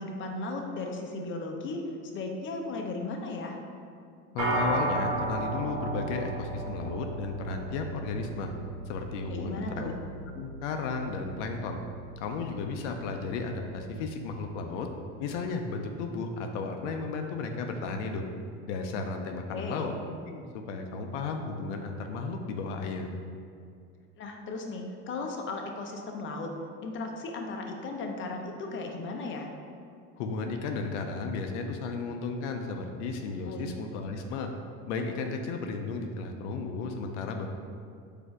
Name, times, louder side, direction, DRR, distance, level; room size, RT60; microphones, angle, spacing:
voice 1, 0.0-1.8 2.1-3.6 9.3-10.0 19.5-19.9 24.2-26.5 26.8-29.5 33.4-33.6, left 3 dB, 35° left, 2 dB, 0.6 m, -36 dB
voice 2, 4.3-8.5 8.9-9.9 10.3-11.8 12.2-14.9 15.2-18.3 18.7-23.1 30.2-34.5 34.9-37.5, left 4 dB, 80° left, 4 dB, 0.5 m, -34 dB
sound 1, 4.4-13.9, right 2 dB, 70° right, 1.1 m, -35 dB
4.2 x 2.7 x 4.6 m, 2.3 s
supercardioid pair, 95°, 35 cm